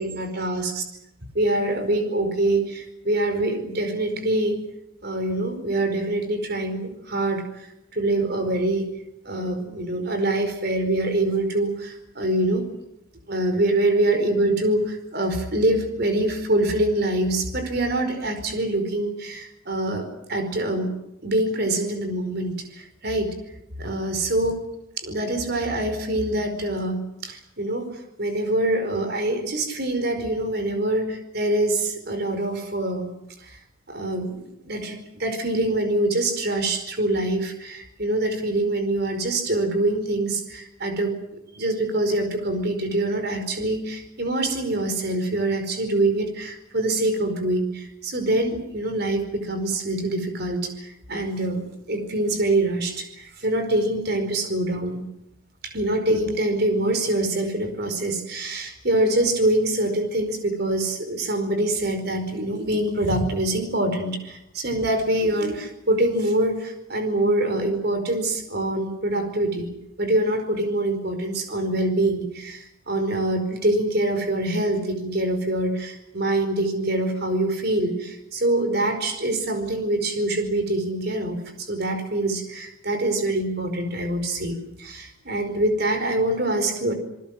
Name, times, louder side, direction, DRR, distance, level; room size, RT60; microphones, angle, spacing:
voice 1, 0.0-0.8 1.3-4.6 5.0-7.7 7.9-8.9 9.2-12.7 13.3-20.9 21.2-23.3 23.8-24.6 25.0-33.1 33.4-33.6 33.9-41.1 41.5-55.0 55.6-69.7 70.0-86.9, right 1 dB, 50° right, 7 dB, 4.8 m, -25 dB
28.0 x 20.0 x 7.7 m, 0.83 s
head